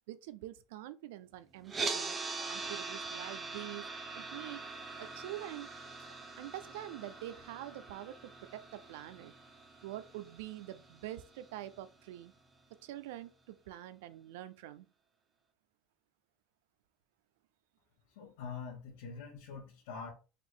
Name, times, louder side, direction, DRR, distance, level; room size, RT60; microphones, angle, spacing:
voice 1, 0.1-2.2 2.5-3.9 4.1-4.6 5.0-5.7 6.4-9.3 9.8-12.3 12.8-14.9, right 14 dB, 90° right, 0.4 m, -45 dB
sound 1, 1.7-11.8, right 4 dB, 20° right, 0.6 m, -43 dB
voice 2, 18.1-20.1, left 5 dB, 85° left, 1.3 m, -44 dB
4.0 x 2.6 x 3.5 m
cardioid pair, 145°, 0 cm